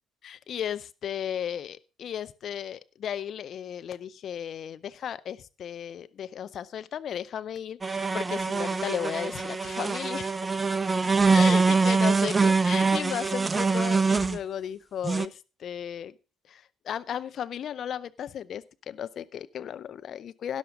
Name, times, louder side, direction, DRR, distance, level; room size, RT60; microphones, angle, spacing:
voice 1, 0.2-10.3 11.3-16.1 16.5-20.6, left 9 dB, 50° left, 14 dB, 0.6 m, -35 dB
sound 1, 7.8-14.4 15.0-15.3, right 4 dB, 20° right, 0.6 m, -24 dB
12.5 x 11.0 x 3.7 m, 0.31 s
figure-of-eight pair, 50°, 0 cm